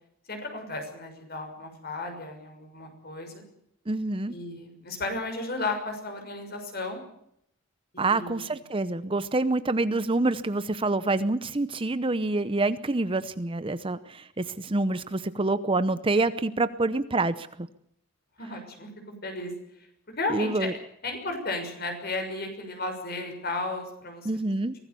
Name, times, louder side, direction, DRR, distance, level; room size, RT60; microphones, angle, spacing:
voice 1, 0.3-3.4 4.3-7.0 7.9-8.4 18.4-19.5 20.2-20.7 21.0-24.3, left 2 dB, 50° left, 5 dB, 6.5 m, -34 dB
voice 2, 3.9-4.3 8.0-17.7 20.3-20.7 24.2-24.7, right 2 dB, 25° right, 13 dB, 0.7 m, -27 dB
23.5 x 18.0 x 6.9 m, 0.73 s
head